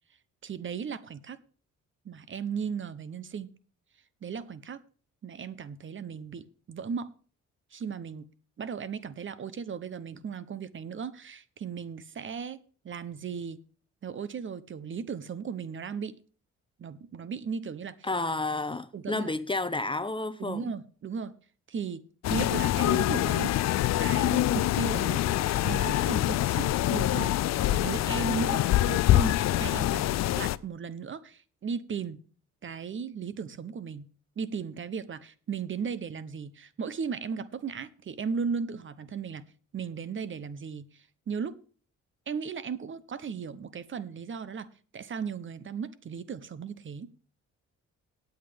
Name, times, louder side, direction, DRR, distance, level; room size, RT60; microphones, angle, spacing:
voice 1, 0.4-1.4 2.0-3.5 4.2-4.8 5.2-7.1 7.7-8.3 8.6-12.6 12.8-13.6 14.0-16.2 16.8-18.1 18.9-19.3 20.4-21.3 21.7-22.0 22.3-23.6 24.0-25.2 25.6-27.3 27.7-30.1 30.4-32.2 32.6-34.1 34.4-39.5 39.7-41.6 42.3-44.7 44.9-47.1, right 6 dB, 40° right, 0.8 m, -36 dB
voice 2, 18.0-20.7, left 2 dB, 15° left, 0.7 m, -31 dB
sound 1, 22.2-30.6, left 14 dB, 60° left, 0.5 m, -25 dB
17.5 x 8.1 x 3.5 m
cardioid pair, 90°, 30 cm